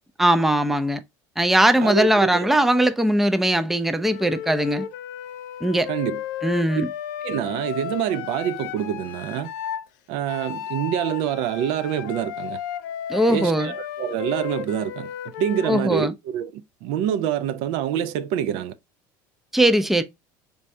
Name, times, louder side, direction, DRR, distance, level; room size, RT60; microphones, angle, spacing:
voice 1, 0.2-1.0 1.4-4.9 5.6-5.9 6.4-6.9 13.1-13.7 15.6-16.1 19.5-20.0, right 1 dB, 5° right, 0.4 m, -20 dB
voice 2, 1.8-2.5 5.9-6.2 7.2-9.5 10.1-12.6 13.3-15.1 15.4-18.8, right 10 dB, 70° right, 0.4 m, -26 dB
Wind instrument woodwind instrument, 4.0-9.9 10.3-15.9, left 10 dB, 85° left, 0.4 m, -34 dB
3.4 x 2.6 x 3.2 m
supercardioid pair, 95°, 10 cm